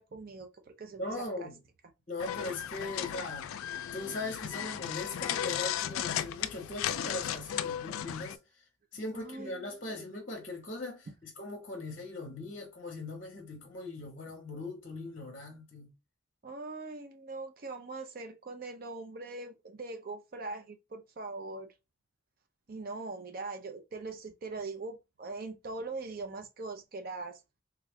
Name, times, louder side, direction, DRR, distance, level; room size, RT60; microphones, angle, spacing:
voice 1, 0.0-1.5 9.1-10.0 16.4-21.7 22.7-27.4, right 3 dB, 45° right, 0.5 m, -41 dB
voice 2, 1.0-1.6 2.1-3.7 3.9-8.7 8.9-15.9, left 2 dB, 40° left, 0.8 m, -40 dB
sound 1, 2.2-8.4, left 10 dB, 90° left, 0.3 m, -35 dB
3.5 x 2.2 x 3.4 m
head